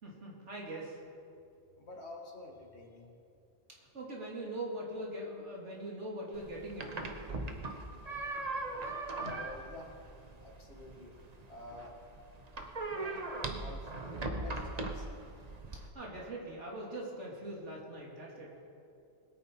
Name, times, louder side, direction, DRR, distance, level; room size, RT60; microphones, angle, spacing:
voice 1, 0.0-1.0 3.8-7.2 15.9-18.5, right 1 dB, 60° right, -3 dB, 2.8 m, -42 dB
voice 2, 1.8-3.1 7.4-7.7 9.1-11.2 11.5-12.0 12.9-13.2 13.6-13.9 14.2-15.1, left 2 dB, 50° left, -1 dB, 2.2 m, -49 dB
sound 1, 6.3-15.9, right 2 dB, 35° right, 1.0 m, -40 dB
21.0 x 9.1 x 4.5 m, 2.6 s
omnidirectional pair, 1.4 m